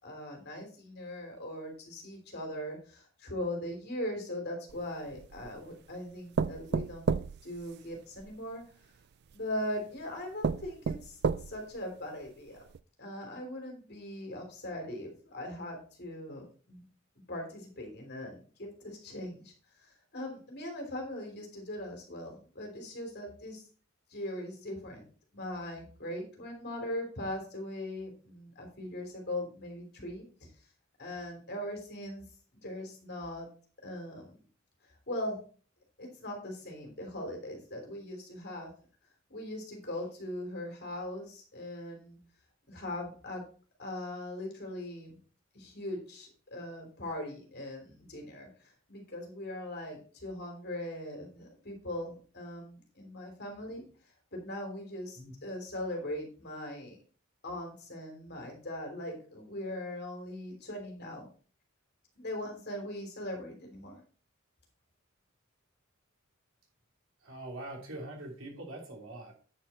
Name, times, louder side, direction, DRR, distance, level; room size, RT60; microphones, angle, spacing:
voice 1, 0.0-7.2 7.4-8.6 9.3-11.2 11.5-12.6 13.0-16.8 17.3-19.5 19.8-23.6 24.1-25.1 25.3-30.2 31.0-32.2 32.6-33.5 33.8-34.4 35.1-35.4 36.0-38.7 39.3-42.2 42.7-43.4 43.8-45.2 45.5-53.8 54.3-57.0 57.4-61.3 62.2-64.0, left 1 dB, 55° left, 2 dB, 3.3 m, -40 dB
sound 1, 4.7-5.6 6.4-8.3 9.3-9.4 10.0-10.1 10.4-11.8 12.3-12.4 12.7-12.8, right 5 dB, 55° right, 0.4 m, -32 dB
voice 2, 67.2-69.3, right 1 dB, 70° right, 0 dB, 3.3 m, -43 dB
9.6 x 6.7 x 4.3 m, 0.40 s
head